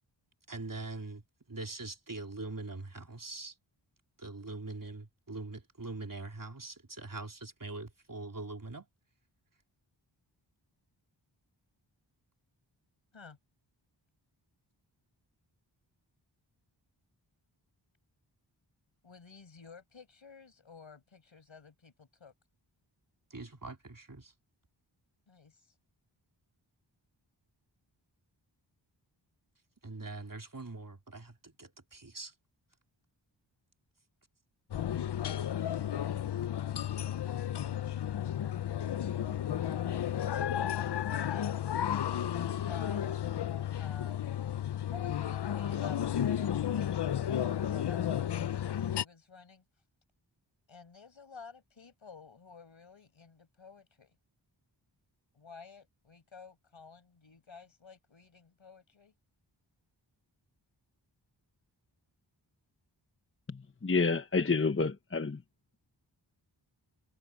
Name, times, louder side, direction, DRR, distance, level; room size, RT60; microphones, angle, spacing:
voice 1, 0.5-1.2 1.5-3.5 4.2-8.9 23.3-24.3 29.8-32.3, right 3 dB, 45° right, 4.0 m, -43 dB
voice 2, 19.0-22.3 25.3-25.7 37.6-38.2 41.3-41.8 42.3-43.2 43.8-44.4 44.9-46.0 46.3-46.8 47.2-49.6 50.7-54.2 55.3-59.1, left 5 dB, 85° left, 7.0 m, -52 dB
sound 1, 34.7-49.0, left 10 dB, 60° left, 0.6 m, -33 dB
voice 3, 63.5-65.4, left 4 dB, 25° left, 1.0 m, -29 dB
wide cardioid pair, 50°, 46 cm